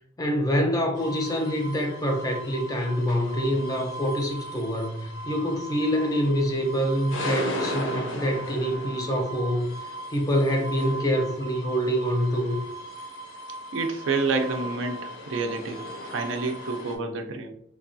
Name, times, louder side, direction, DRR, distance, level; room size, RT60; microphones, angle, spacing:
voice 1, 0.2-9.7 10.1-12.6, equal, 20° left, 2 dB, 0.5 m, -26 dB
sound 1, 1.0-17.0, equal, 75° left, 0.6 m, -37 dB
voice 2, 13.7-17.5, right 3 dB, 70° right, 4 dB, 0.4 m, -29 dB
3.2 x 2.2 x 2.5 m, 0.66 s
head